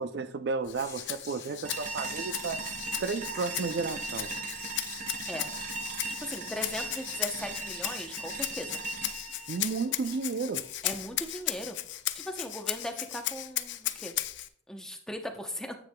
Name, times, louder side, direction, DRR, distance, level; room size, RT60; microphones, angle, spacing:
voice 1, 0.0-2.7 3.0-4.3 9.5-10.7, right 4 dB, 60° right, 0.4 m, -33 dB
Rattle (instrument), 0.6-14.5, left 14 dB, 70° left, 0.5 m, -36 dB
sound 1, 0.6-7.6, left 4 dB, 20° left, 1.5 m, -51 dB
sound 2, 1.6-10.7, right 4 dB, 40° right, 0.8 m, -38 dB
voice 2, 6.1-8.8 10.8-11.8 12.1-14.1 14.7-15.7, equal, 5° left, 0.7 m, -38 dB
9.6 x 8.2 x 2.2 m
head